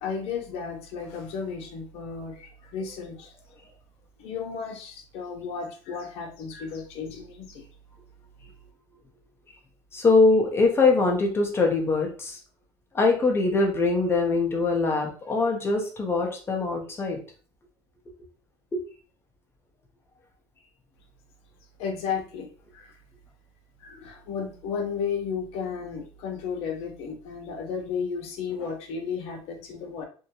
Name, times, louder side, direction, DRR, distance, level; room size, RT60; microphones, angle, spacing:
voice 1, 0.0-3.3 4.2-7.6 21.8-22.5 22.7-22.9 23.8-30.1, left 6 dB, 75° left, 3 dB, 0.7 m, -33 dB
voice 2, 9.9-12.4 12.9-17.2 18.7-18.8, left 3 dB, 25° left, 1 dB, 0.8 m, -22 dB
2.6 x 2.1 x 2.8 m, 0.40 s
supercardioid pair, 105°, 10 cm